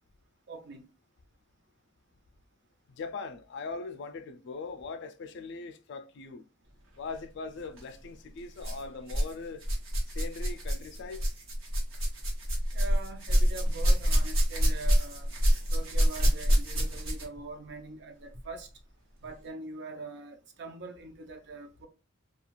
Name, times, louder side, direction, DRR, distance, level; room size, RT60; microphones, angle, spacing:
voice 1, 0.5-0.8 12.7-15.3 15.7-18.7 19.2-21.9, right 3 dB, 60° right, 0.6 m, -43 dB
voice 2, 3.0-6.4 7.0-9.7 10.1-11.3, left 4 dB, 60° left, 0.4 m, -40 dB
sound 1, 7.6-7.8 8.6-9.3 9.6-17.4 18.3-18.4 19.2-19.3, equal, 80° right, 1.0 m, -27 dB
2.4 x 2.3 x 3.0 m
head